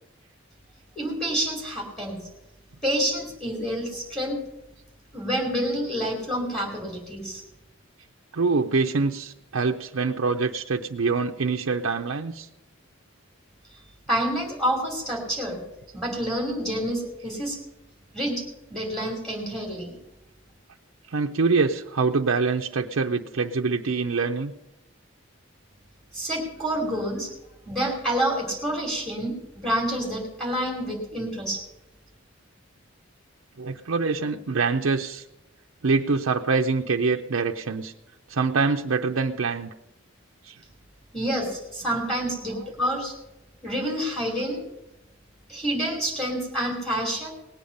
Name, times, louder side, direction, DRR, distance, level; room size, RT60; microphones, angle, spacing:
voice 1, 1.0-2.2 2.8-4.4 5.1-7.4 14.1-15.6 15.9-17.6 18.1-18.4 18.7-19.9 26.1-27.3 27.7-31.6 41.1-43.1 43.6-44.6 45.5-47.3, equal, 5° left, 0 dB, 2.8 m, -28 dB
voice 2, 8.3-12.5 21.1-24.5 33.6-35.2 35.8-37.9 38.3-39.7 40.4-40.6 42.5-42.7, right 4 dB, 75° right, 2 dB, 0.6 m, -25 dB
18.5 x 8.7 x 5.3 m, 0.94 s
head